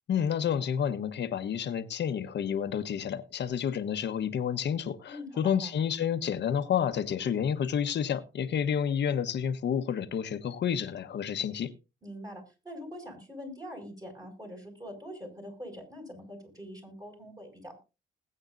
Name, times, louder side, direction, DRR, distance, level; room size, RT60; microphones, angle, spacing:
voice 1, 0.1-11.7, left 8 dB, 60° left, 1.2 m, -30 dB
voice 2, 5.0-5.7 12.0-17.8, equal, 20° right, 6.5 m, -44 dB
20.0 x 8.8 x 2.6 m
cardioid pair, 90°, 20 cm